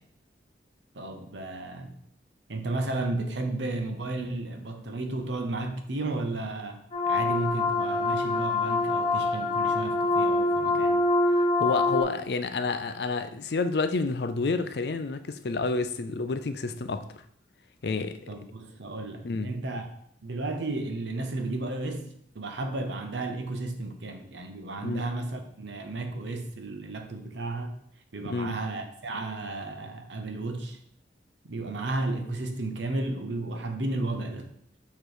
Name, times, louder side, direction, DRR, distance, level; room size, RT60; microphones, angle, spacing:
voice 1, 0.9-2.0 2.5-11.0 18.3-19.9 20.2-27.8 28.1-30.8 31.5-34.5, right 2 dB, 80° right, 6 dB, 0.8 m, -33 dB
sound 1, 6.9-12.0, left 2 dB, 30° left, 1.1 m, -25 dB
voice 2, 11.3-17.0 17.8-18.2 19.2-19.5 24.8-25.0 28.3-28.6, left 3 dB, 60° left, 10 dB, 0.5 m, -29 dB
6.5 x 3.1 x 5.0 m, 0.67 s
head